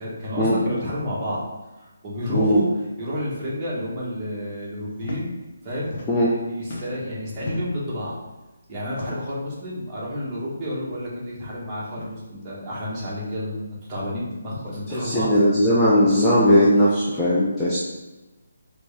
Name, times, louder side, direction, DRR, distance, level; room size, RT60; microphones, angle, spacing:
voice 1, 0.0-1.4 1.8-5.3 5.6-6.2 6.6-8.2 8.7-15.3, equal, 20° right, -8 dB, 1.3 m, -30 dB
voice 2, 2.3-2.6 6.1-6.3 14.9-17.8, equal, 10° left, -8 dB, 0.6 m, -18 dB
sound 1, 4.9-5.2 5.5-6.4 6.6-7.9 8.9-9.4 10.4-10.5 10.9-11.0 11.8-12.1 13.3-13.4 14.5-14.8 15.9-16.2, left 2 dB, 45° left, 0.9 m, -38 dB
4.3 x 3.1 x 3.3 m, 1.1 s
hypercardioid pair, 165°, 0 cm